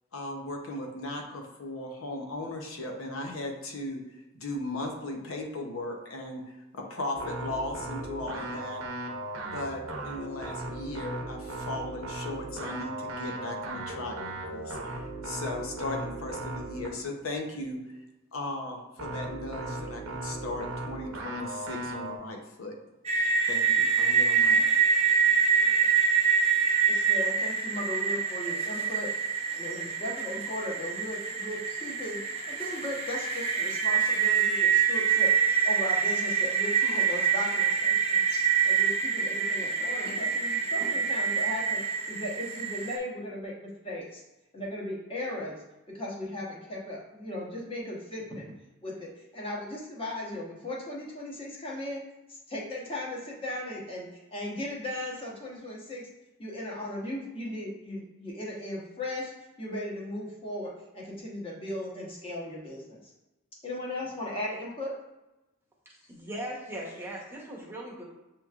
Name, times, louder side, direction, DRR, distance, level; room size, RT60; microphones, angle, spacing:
voice 1, 0.1-4.0 4.3-6.4 6.7-8.8 9.4-14.2 14.5-17.8 18.3-22.7 23.5-24.8, left 2 dB, 85° left, 2 dB, 0.8 m, -37 dB
sound 1, 7.2-17.0 19.0-22.2, right 2 dB, 85° right, 0.7 m, -37 dB
sound 2, 23.1-43.0, right 6 dB, 30° right, 0.6 m, -26 dB
voice 2, 26.9-29.1 29.5-35.3 35.6-38.3 38.6-41.8 42.1-44.2 44.5-45.6 45.9-48.4 48.8-52.0 52.5-56.1 56.4-59.3 59.6-63.0 63.6-64.9, left 1 dB, 25° left, -3 dB, 1.0 m, -37 dB
voice 3, 66.1-68.0, right 1 dB, 10° right, -4 dB, 0.9 m, -38 dB
6.9 x 3.0 x 2.4 m, 1.0 s
head